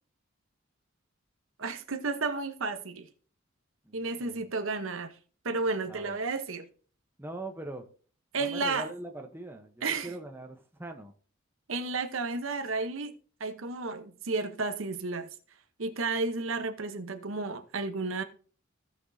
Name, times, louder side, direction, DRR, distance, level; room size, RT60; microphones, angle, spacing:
voice 1, 1.6-3.1 3.9-5.1 5.4-6.6 8.3-8.9 9.8-10.1 11.7-13.1 13.4-15.3 15.8-18.2, right 3 dB, 80° right, 0.9 m, -32 dB
voice 2, 3.8-4.4 5.9-6.2 7.2-7.9 8.4-11.1, right 2 dB, 10° right, 0.9 m, -42 dB
16.5 x 6.1 x 2.7 m
head